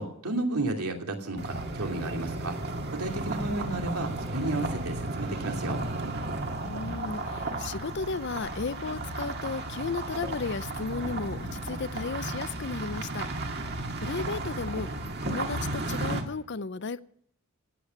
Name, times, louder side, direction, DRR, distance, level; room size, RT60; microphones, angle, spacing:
voice 1, 0.0-2.6 2.9-5.8, right 2 dB, 90° right, 2.8 m, -32 dB
sound 1, 1.4-16.2, right 2 dB, 50° right, 1.9 m, -34 dB
voice 2, 6.6-13.3 14.0-14.9 15.2-17.0, left 4 dB, 50° left, 0.6 m, -34 dB
17.0 x 8.4 x 7.0 m
head